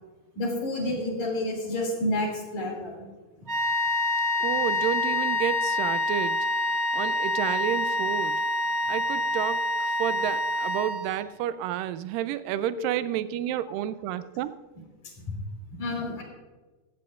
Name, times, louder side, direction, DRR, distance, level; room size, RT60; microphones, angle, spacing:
voice 1, 0.4-3.0 15.2-15.4 15.8-16.2, left 1 dB, 55° left, 0 dB, 4.0 m, -29 dB
sound 1, 3.5-11.3, left 2 dB, 25° right, 1.5 m, -27 dB
voice 2, 4.4-6.4 6.9-8.4 8.9-14.5, right 11 dB, 85° right, 13 dB, 2.2 m, -30 dB
16.5 x 13.5 x 2.5 m, 1.2 s
omnidirectional pair, 4.0 m